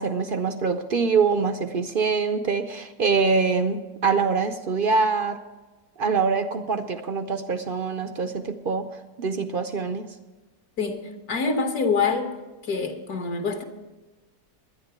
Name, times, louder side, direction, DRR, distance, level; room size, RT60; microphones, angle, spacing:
voice 1, 0.0-5.4 6.0-8.9 9.2-10.1, right 4 dB, 60° right, 8 dB, 0.5 m, -24 dB
voice 2, 11.3-12.4 12.7-13.6, left 4 dB, 65° left, 4 dB, 1.7 m, -25 dB
11.0 x 10.0 x 6.7 m, 1.2 s
omnidirectional pair, 1.7 m